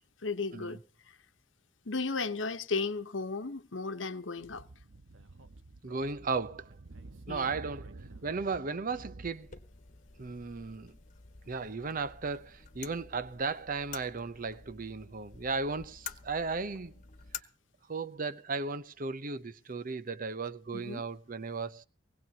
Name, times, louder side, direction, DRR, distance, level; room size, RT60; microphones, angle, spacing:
voice 1, 0.2-0.8 1.0-1.2 1.8-4.7 7.3-7.5 20.7-21.0, left 4 dB, 70° left, 1.1 m, -35 dB
Speech / Wind, 4.4-9.3, right 2 dB, 85° right, 1.2 m, -50 dB
voice 2, 5.8-6.8 7.3-9.6 10.2-10.9 11.5-16.9 17.9-21.8, right 4 dB, 45° right, 0.8 m, -35 dB
sound 1, 9.4-17.4, left 6 dB, 40° left, 1.3 m, -49 dB
20.5 x 17.0 x 2.9 m
head